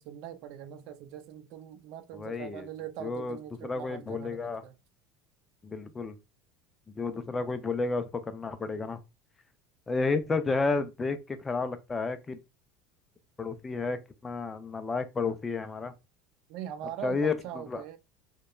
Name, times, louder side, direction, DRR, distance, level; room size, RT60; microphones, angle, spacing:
voice 1, 0.0-4.8 16.5-18.0, right 9 dB, 55° right, 0.4 m, -41 dB
voice 2, 2.1-2.7 3.0-3.4 3.6-4.6 5.6-6.2 6.9-9.0 9.9-12.4 13.4-15.9 17.0-17.8, left 4 dB, 15° left, 0.3 m, -31 dB
2.9 x 2.1 x 2.2 m
cardioid pair, 150°, 0 cm